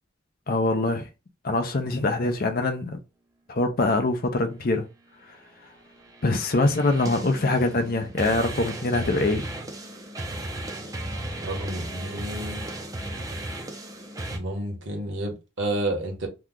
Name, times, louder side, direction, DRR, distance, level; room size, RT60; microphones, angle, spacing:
voice 1, 0.5-1.1 1.4-3.0 3.5-4.9 6.2-9.5, left 2 dB, 45° left, 0.6 m, -24 dB
sound 1, 6.0-14.4, right 1 dB, 15° right, 0.5 m, -35 dB
voice 2, 11.4-12.6 14.3-16.3, right 1 dB, 65° right, 1.1 m, -30 dB
2.9 x 2.3 x 3.6 m
head